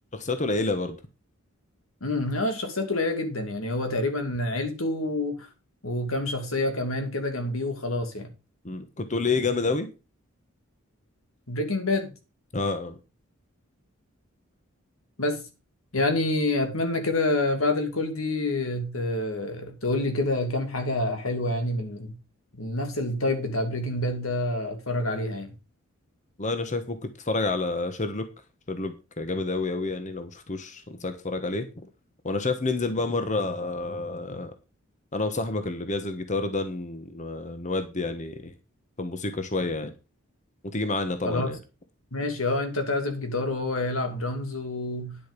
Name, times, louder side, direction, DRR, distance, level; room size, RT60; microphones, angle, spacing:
voice 1, 0.1-1.0 8.6-9.9 12.5-13.0 26.4-28.3 28.7-31.7 32.2-34.5 35.1-38.5 39.0-39.9 40.6-41.6, left 3 dB, 35° left, 1.3 m, -29 dB
voice 2, 2.0-5.5 5.8-8.3 11.5-12.1 15.2-15.4 15.9-22.2 22.5-25.5 41.2-41.5 42.1-45.2, left 2 dB, 85° left, 2.7 m, -27 dB
10.0 x 7.6 x 5.3 m
head